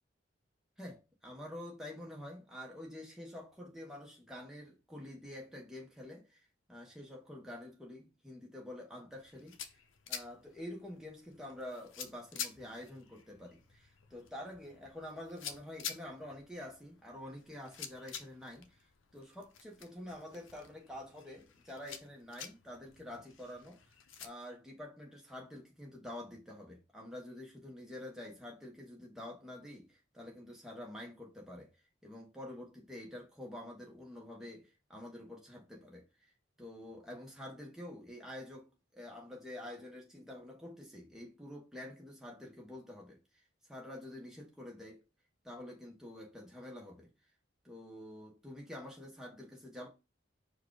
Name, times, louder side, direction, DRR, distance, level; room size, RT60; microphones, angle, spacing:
voice 1, 0.8-9.8 10.1-31.7 32.0-36.3 36.6-43.4 43.7-45.0 45.4-47.1 47.6-49.9, left 1 dB, 5° right, 1.1 m, -48 dB
sound 1, 9.2-24.3, left 8 dB, 85° left, 0.6 m, -49 dB
4.6 x 2.4 x 4.7 m
head